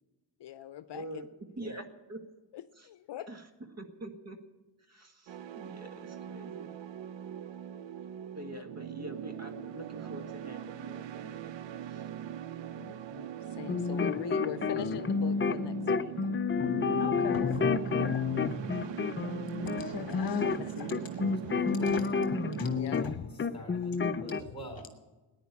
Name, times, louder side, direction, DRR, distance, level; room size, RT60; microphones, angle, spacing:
voice 1, 0.4-1.2 1.6-1.8 2.5-3.3 8.5-8.6 12.8-16.1 20.4-20.9 21.7-21.8 22.7-23.1, left 11 dB, 65° left, 0.7 m, -41 dB
voice 2, 0.9-2.2 2.8-2.9 3.3-3.4 3.8-4.4 4.9-6.7 8.3-11.5 11.8-12.1, right 1 dB, 35° right, 1.6 m, -45 dB
sound 1, 5.3-22.8, right 9 dB, 75° right, 0.7 m, -41 dB
sound 2, 13.6-23.1 23.4-24.4, left 5 dB, 30° left, 0.5 m, -30 dB
voice 3, 17.0-18.2 18.7-18.8 19.6-20.9 21.8-22.1 22.6-22.7 23.0-23.3, left 7 dB, 50° left, 1.1 m, -39 dB
voice 4, 18.4-18.8 21.2-22.2 22.9-23.3 23.5-25.0, right 1 dB, 10° left, 4.6 m, -46 dB
15.0 x 10.0 x 8.4 m
cardioid pair, 105°, 45 cm